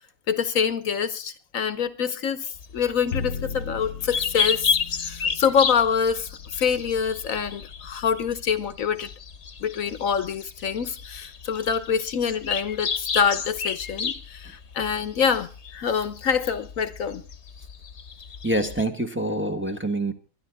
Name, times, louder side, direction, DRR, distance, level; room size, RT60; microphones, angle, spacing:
voice 1, 0.3-4.8 5.0-9.1 9.6-17.2, left 7 dB, 70° left, 1.3 m, -25 dB
sound 1, 2.6-18.8, left 6 dB, 55° left, 1.3 m, -32 dB
Bowed string instrument, 3.1-9.3, left 6 dB, 85° left, 1.5 m, -38 dB
voice 2, 18.4-20.1, right 1 dB, 10° right, 1.3 m, -26 dB
23.5 x 11.0 x 3.5 m
omnidirectional pair, 1.5 m